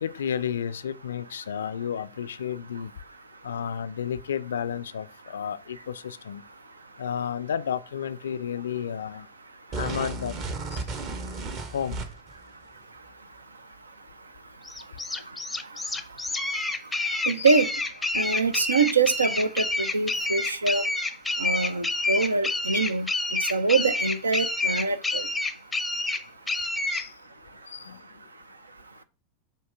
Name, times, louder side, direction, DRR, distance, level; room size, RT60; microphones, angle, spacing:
voice 1, 0.0-2.9 3.4-6.4 7.0-9.3 9.7-10.4 10.7-10.8 11.7-12.0 17.4-17.5 26.9-27.1 27.7-28.0, left 8 dB, 65° left, 0.4 m, -32 dB
sound 1, 9.7-12.4, right 3 dB, 40° right, 1.0 m, -34 dB
sound 2, 14.7-27.1, left 2 dB, 5° left, 0.6 m, -28 dB
voice 2, 17.3-17.7 18.1-20.8 21.4-23.1 23.5-25.2, right 4 dB, 75° right, 0.5 m, -24 dB
7.6 x 2.7 x 4.8 m
figure-of-eight pair, 90°, 0 cm